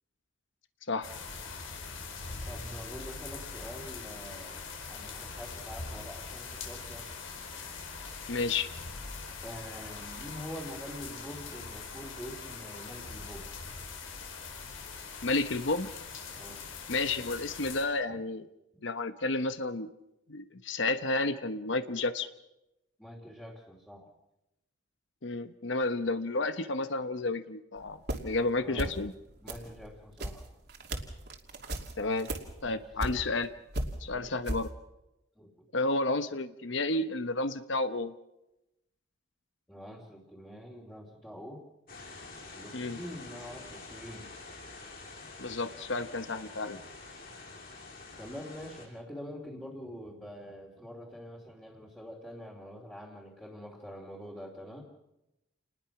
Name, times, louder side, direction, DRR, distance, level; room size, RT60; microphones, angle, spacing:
sound 1, 1.0-17.8, left 4 dB, 85° left, 4.9 m, -42 dB
voice 1, 2.4-4.6 4.9-7.1 9.4-13.5 16.3-16.6 18.1-18.2 23.0-24.2 28.6-29.0 29.4-30.5 32.6-33.3 34.1-34.6 35.3-35.7 39.7-41.7 42.5-44.3 48.2-54.8, equal, 5° left, -4 dB, 2.8 m, -45 dB
voice 2, 8.3-8.7 15.2-15.9 16.9-18.5 18.8-19.9 20.3-22.3 25.2-29.1 32.0-32.3 32.6-33.5 34.0-34.7 35.7-38.1 42.7-43.0 45.4-46.8, left 2 dB, 65° left, 11 dB, 1.0 m, -31 dB
sound 2, 27.8-28.5 28.7-29.2 29.4-33.5 33.7-34.7, right 1 dB, 55° right, 2.7 m, -36 dB
sound 3, 41.9-48.9, left 3 dB, 45° left, 6.0 m, -47 dB
29.5 x 20.0 x 6.0 m, 0.92 s
head